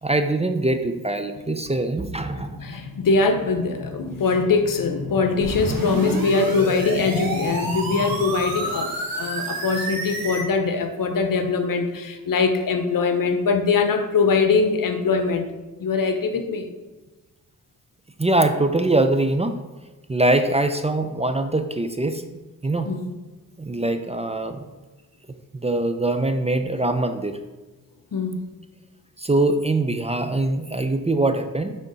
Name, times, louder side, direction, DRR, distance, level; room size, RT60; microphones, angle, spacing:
voice 1, 0.0-2.6 18.2-19.6 20.1-22.2 22.6-22.9 23.6-24.6 25.6-27.4 29.2-31.8, right 2 dB, 20° right, 7 dB, 0.5 m, -22 dB
voice 2, 2.6-15.5 15.8-16.7 22.9-23.1 28.1-28.5, left 4 dB, 65° left, 7 dB, 0.9 m, -22 dB
sound 1, 5.4-10.4, right 2 dB, 75° right, 1.5 m, -29 dB
9.3 x 3.6 x 4.0 m, 1.2 s
cardioid pair, 65°, 35 cm